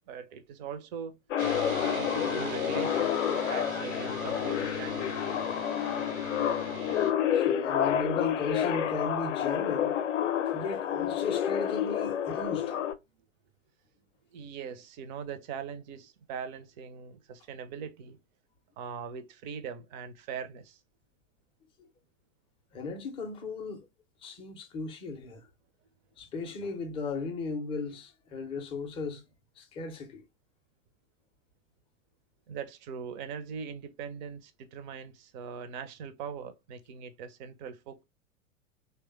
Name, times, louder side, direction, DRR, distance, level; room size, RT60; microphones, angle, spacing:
voice 1, 0.1-1.2 1.7-5.4 14.3-18.2 18.8-20.8 32.5-38.0, right 6 dB, 35° right, 0.5 m, -41 dB
sound 1, 1.3-12.9, left 10 dB, 65° left, 0.5 m, -29 dB
sound 2, 1.4-7.1, right 1 dB, 85° right, 0.9 m, -38 dB
voice 2, 7.3-10.0 10.4-12.8 21.8-21.9 22.7-23.9 24.2-25.5 26.2-29.2 29.6-30.2, left 4 dB, 15° left, 0.4 m, -36 dB
3.1 x 2.2 x 3.0 m
figure-of-eight pair, 95°, 40 cm